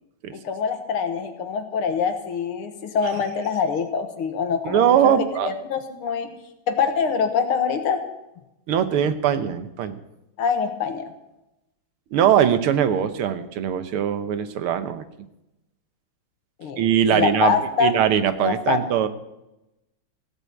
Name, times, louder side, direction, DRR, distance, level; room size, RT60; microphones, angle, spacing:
voice 1, 0.3-6.3 6.7-8.0 10.4-11.1 16.6-17.9 18.4-18.8, left 6 dB, 85° left, 7 dB, 2.3 m, -24 dB
voice 2, 4.6-5.5 8.7-10.0 12.1-15.0 16.8-17.5 17.8-19.1, right 9 dB, 85° right, 11 dB, 1.9 m, -21 dB
16.0 x 8.2 x 8.5 m, 0.92 s
omnidirectional pair, 2.3 m